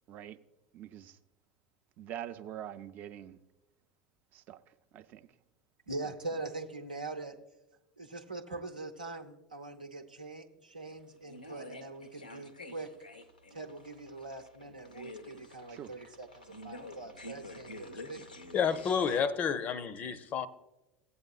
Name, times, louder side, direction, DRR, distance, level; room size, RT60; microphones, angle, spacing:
voice 1, 0.1-0.4 0.7-1.2 2.0-3.4 4.3-5.3 6.0-6.1 15.7-15.9, right 11 dB, 40° right, 0.5 m, -45 dB
voice 2, 5.9-7.4 8.0-12.9 13.5-18.3, right 2 dB, 85° right, 0.8 m, -42 dB
sound 1, 10.8-19.2, left 2 dB, 85° left, 0.7 m, -49 dB
voice 3, 18.5-20.5, left 7 dB, 35° left, 0.5 m, -30 dB
15.5 x 8.5 x 2.4 m
figure-of-eight pair, 75°, 4 cm